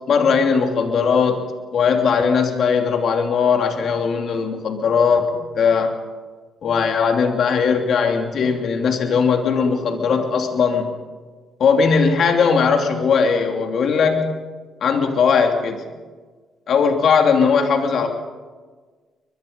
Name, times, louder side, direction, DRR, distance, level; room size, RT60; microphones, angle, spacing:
voice 1, 0.0-5.9 6.6-10.9 11.6-14.3 14.8-15.8 16.7-18.1, left 5 dB, 60° left, 4 dB, 3.0 m, -19 dB
23.5 x 21.0 x 5.5 m, 1.4 s
cardioid pair, 90°, 0 cm